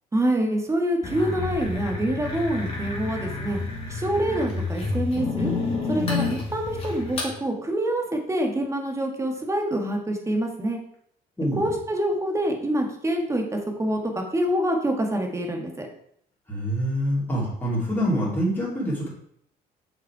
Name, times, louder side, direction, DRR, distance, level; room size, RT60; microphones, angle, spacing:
voice 1, 0.1-3.6 3.9-5.5 5.9-10.8 11.5-15.9, right 1 dB, 15° right, 3 dB, 1.5 m, -26 dB
sound 1, 1.0-7.3, left 3 dB, 35° left, 2.3 m, -29 dB
voice 2, 11.4-11.7 16.5-19.1, equal, 10° left, -6 dB, 2.9 m, -25 dB
6.0 x 5.5 x 4.7 m, 0.68 s
cardioid pair, 110°, 17 cm